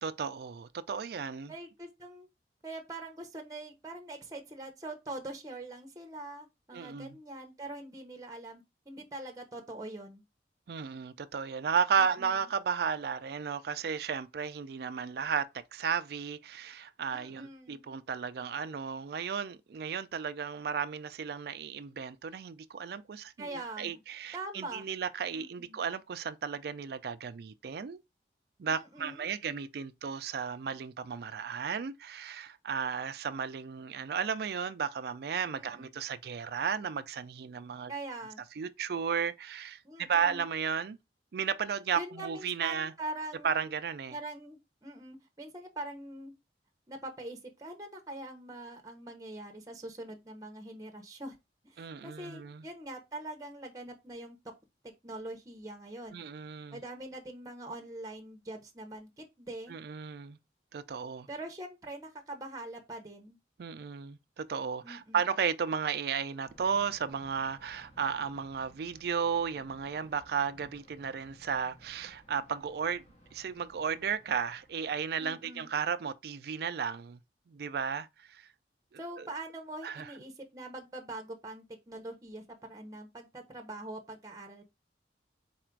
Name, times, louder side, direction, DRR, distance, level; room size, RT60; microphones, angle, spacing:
voice 1, 0.0-1.5 6.7-7.2 10.7-28.0 28.6-37.9 38.6-41.0 41.3-42.9 43.4-44.2 51.8-52.6 56.1-56.8 59.7-60.4 60.7-61.3 63.6-73.0 73.3-77.2 77.5-78.5 79.2-79.3 79.8-80.1, right 6 dB, 60° right, 0.4 m, -34 dB
voice 2, 1.5-2.3 2.6-10.2 12.0-12.5 17.1-17.9 23.4-24.0 24.3-24.8 25.3-25.8 28.7-29.3 35.5-35.9 37.9-38.4 39.8-40.4 41.9-43.7 44.1-46.3 46.9-51.3 51.6-54.4 55.0-56.2 56.7-59.7 61.3-63.4 64.8-65.2 75.2-75.7 79.0-84.6, right 2 dB, 20° right, 0.7 m, -43 dB
Thunder, 66.5-75.3, equal, 40° left, 0.9 m, -59 dB
4.2 x 2.4 x 4.4 m
head